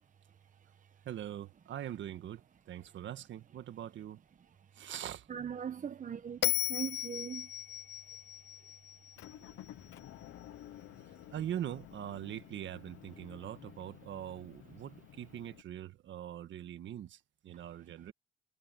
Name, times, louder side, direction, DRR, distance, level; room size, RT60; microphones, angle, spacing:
voice 1, 1.0-4.2 4.7-5.3 11.3-18.1, right 11 dB, 70° right, 1.5 m, -42 dB
voice 2, 5.3-7.5, right 8 dB, 40° right, 1.1 m, -40 dB
Bell, 6.4-9.7, left 14 dB, 60° left, 0.4 m, -36 dB
Motor vehicle (road) / Engine, 9.2-15.6, left 13 dB, 80° left, 0.9 m, -53 dB
cardioid pair, 90°, 20 cm